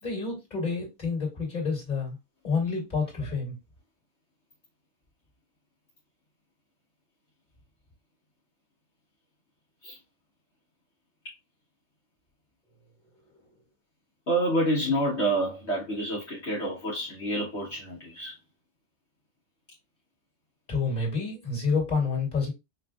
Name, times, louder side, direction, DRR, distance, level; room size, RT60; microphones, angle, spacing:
voice 1, 0.0-2.2 2.4-3.6 20.7-22.5, left 4 dB, 35° left, 2.2 m, -28 dB
voice 2, 14.3-18.3, right 1 dB, 65° left, 1.6 m, -28 dB
5.6 x 2.6 x 2.3 m
omnidirectional pair, 1.2 m